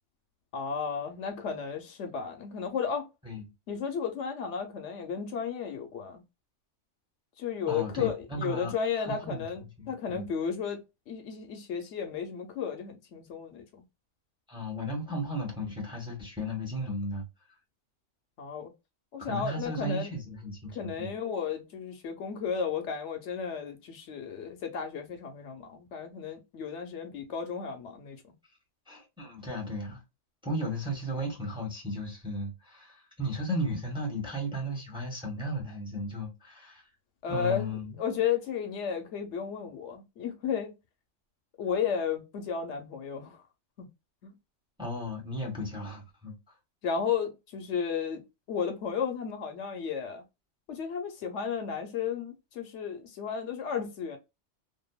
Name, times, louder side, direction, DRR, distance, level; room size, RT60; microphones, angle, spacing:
voice 1, 0.5-3.1 3.7-6.2 7.4-10.8 11.1-13.8 18.4-18.7 19.1-20.1 20.7-28.2 37.2-40.7 41.6-43.4 43.8-43.9 44.2-44.3 46.8-48.2 48.5-50.2 50.7-54.2, left 7 dB, 75° left, 0.9 m, -33 dB
voice 2, 7.7-8.7 9.0-9.5 9.8-10.2 14.5-17.2 19.2-21.1 28.9-30.0 30.4-36.8 37.3-38.0 44.8-46.4, equal, 5° right, 0.8 m, -35 dB
2.7 x 2.5 x 2.2 m
omnidirectional pair, 1.3 m